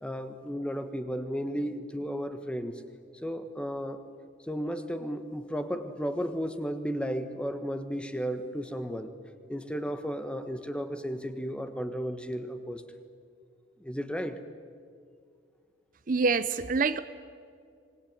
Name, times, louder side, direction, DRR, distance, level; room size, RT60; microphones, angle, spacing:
voice 1, 0.0-2.7 3.2-4.0 4.5-9.1 9.5-12.8 13.8-14.4, equal, 5° left, 9 dB, 1.3 m, -34 dB
voice 2, 16.1-17.0, right 4 dB, 45° right, 13 dB, 0.7 m, -26 dB
26.0 x 20.0 x 9.0 m, 2.3 s
head